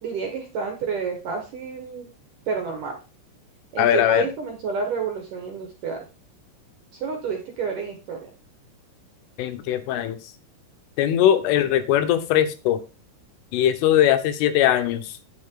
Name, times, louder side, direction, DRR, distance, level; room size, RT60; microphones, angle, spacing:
voice 1, 0.0-2.1 2.5-3.0 3.7-6.1 6.9-8.2, right 5 dB, 65° right, 4 dB, 2.2 m, -29 dB
voice 2, 3.8-4.3 9.4-10.2 11.0-12.8 13.5-15.1, left 11 dB, 85° left, 10 dB, 3.5 m, -20 dB
8.9 x 8.8 x 3.8 m, 0.30 s
omnidirectional pair, 5.6 m